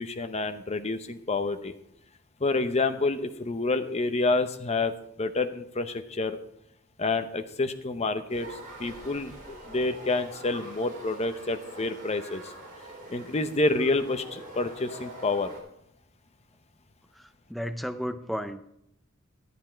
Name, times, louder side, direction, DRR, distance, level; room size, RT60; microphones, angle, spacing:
voice 1, 0.0-1.7 2.4-4.9 5.2-6.4 7.0-12.5 13.1-15.5, left 3 dB, 35° left, 9 dB, 0.8 m, -28 dB
sound 1, 8.3-15.6, right 1 dB, 45° right, 3.6 m, -45 dB
voice 2, 17.1-18.7, equal, ahead, 8 dB, 0.6 m, -34 dB
11.0 x 9.9 x 4.5 m, 0.76 s
head